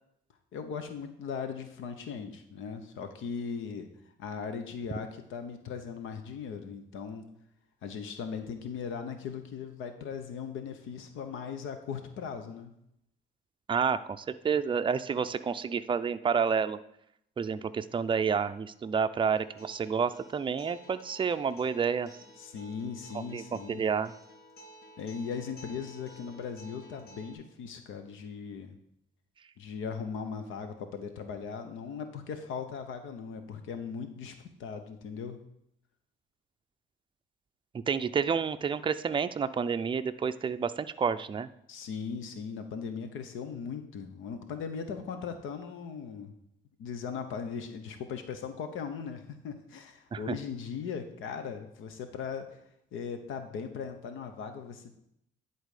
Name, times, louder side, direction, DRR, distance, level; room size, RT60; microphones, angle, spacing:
voice 1, 0.5-3.9 4.2-7.3 7.8-12.7 22.4-23.8 25.0-28.8 29.6-34.3 34.6-35.4 41.7-46.3 46.8-52.6 52.9-54.9, left 6 dB, 85° left, 8 dB, 0.8 m, -38 dB
voice 2, 13.7-16.8 17.4-22.1 23.3-24.1 37.9-41.5 50.1-50.3, right 6 dB, 25° right, 11 dB, 0.4 m, -29 dB
Acoustic guitar, 19.3-27.3, equal, 55° left, 1.5 m, -53 dB
10.0 x 4.1 x 4.9 m, 0.75 s
cardioid pair, 90°, 20 cm